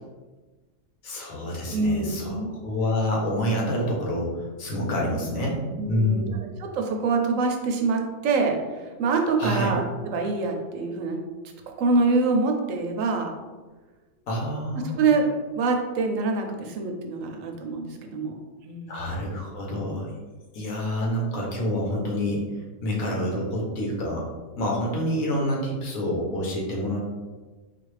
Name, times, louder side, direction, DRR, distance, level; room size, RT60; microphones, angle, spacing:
voice 1, 1.0-5.6 5.9-6.3 9.4-9.7 14.3-15.1 18.9-20.1 20.5-22.4 22.8-24.3 24.6-27.1, left 1 dB, 90° left, -2 dB, 1.3 m, -27 dB
voice 2, 1.7-2.6 5.8-8.6 9.0-11.2 11.7-13.3 14.8-18.3 18.6-19.0, right 3 dB, 75° right, 3 dB, 1.0 m, -25 dB
4.0 x 2.5 x 3.2 m, 1.3 s
omnidirectional pair, 1.4 m